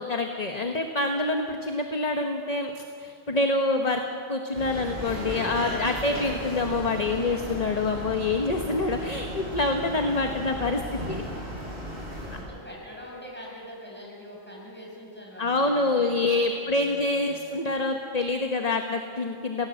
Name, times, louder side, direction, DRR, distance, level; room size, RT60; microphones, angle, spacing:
voice 1, 0.0-4.0 4.3-11.2 15.4-19.7, left 2 dB, 30° left, 4 dB, 1.3 m, -26 dB
sound 1, 4.5-12.4, equal, 35° right, 8.3 m, -35 dB
voice 2, 10.7-11.5 12.3-17.7, equal, 10° left, -4 dB, 6.9 m, -44 dB
27.5 x 18.0 x 7.8 m, 2.5 s
omnidirectional pair, 1.3 m